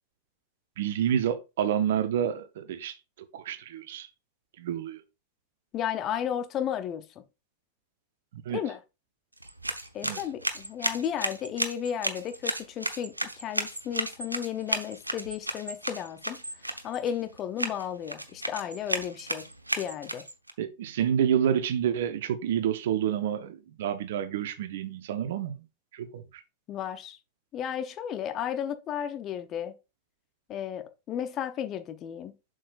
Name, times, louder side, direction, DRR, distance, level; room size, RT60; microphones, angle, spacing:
voice 1, 0.8-2.9 3.3-4.1 4.6-5.0 8.3-8.6 10.0-10.2 20.6-25.6 25.9-26.2, right 9 dB, 55° right, 0.9 m, -28 dB
voice 2, 5.7-7.0 8.5-8.8 9.9-16.4 16.8-19.5 19.8-20.2 26.7-27.2 27.5-29.8 30.5-32.4, left 9 dB, 30° left, 0.7 m, -33 dB
sound 1, 9.3-20.5, right 1 dB, 85° right, 0.8 m, -34 dB
7.5 x 6.5 x 2.5 m
figure-of-eight pair, 90°, 0 cm